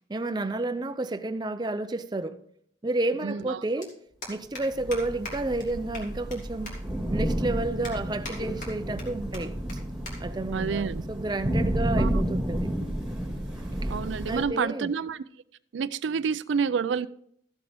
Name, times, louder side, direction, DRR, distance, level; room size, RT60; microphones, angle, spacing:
voice 1, 0.1-2.4 2.8-3.9 4.3-6.7 7.1-9.5 10.2-12.7 13.8-13.9 14.3-14.9, right 2 dB, 25° right, 0.5 m, -31 dB
sound 1, 1.5-1.6 3.0-3.1 3.3-3.5 3.8-3.9 4.2-4.6 4.9-5.0 5.2-5.3 5.6-5.7 5.9-6.4 6.6-6.7 7.2-7.3 7.8-8.3 8.6-9.0 9.3-9.4 9.7-9.8 10.0-10.1 10.5-10.7 11.5-11.7, left 2 dB, 45° left, 2.7 m, -40 dB
voice 2, 3.2-3.6 10.5-11.0 12.0-12.1 13.9-15.2 15.7-17.1, right 6 dB, 85° right, 0.4 m, -28 dB
Thunder / Rain, 4.7-14.4, right 1 dB, 5° right, 2.0 m, -31 dB
14.0 x 7.8 x 3.4 m
head